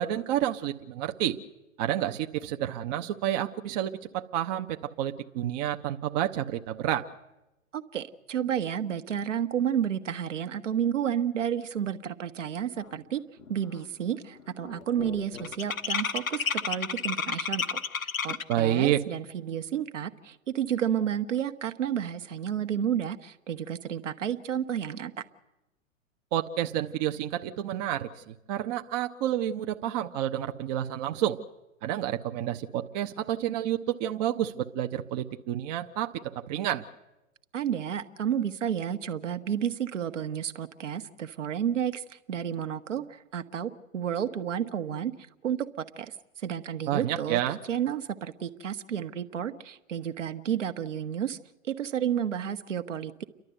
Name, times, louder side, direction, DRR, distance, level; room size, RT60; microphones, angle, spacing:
voice 1, 0.0-1.4 1.8-7.0 18.5-19.0 26.3-31.4 31.8-36.8 46.9-47.6, right 12 dB, 30° right, 6 dB, 0.8 m, -29 dB
voice 2, 7.7-13.2 13.5-25.1 37.5-45.1 45.4-47.4 47.7-51.4 51.7-53.2, right 9 dB, 65° right, 8 dB, 1.3 m, -31 dB
sound 1, 13.0-13.1 13.4-13.8 14.0-18.7, left 6 dB, 80° left, 1.0 m, -32 dB
29.5 x 12.0 x 8.0 m, 0.98 s
figure-of-eight pair, 105°, 40 cm